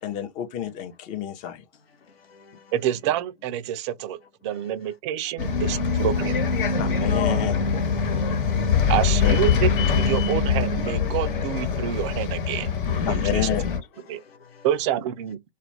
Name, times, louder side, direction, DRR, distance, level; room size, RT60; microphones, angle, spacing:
voice 1, 0.0-1.6 6.8-7.8 9.0-9.4 13.1-13.8, left 10 dB, 25° left, 0.6 m, -30 dB
voice 2, 2.1-2.7 4.5-4.6 5.7-5.8 6.7-6.8 7.1-7.2 7.8-8.9 14.1-14.7, left 5 dB, 90° left, 0.7 m, -51 dB
voice 3, 2.7-4.2 4.4-6.4 8.9-12.7 13.1-13.5 14.1-14.2 14.6-15.4, right 11 dB, 30° right, 0.4 m, -27 dB
Bus, 5.4-13.8, left 5 dB, 60° left, 1.2 m, -23 dB
2.3 x 2.1 x 3.1 m
figure-of-eight pair, 110°, 29 cm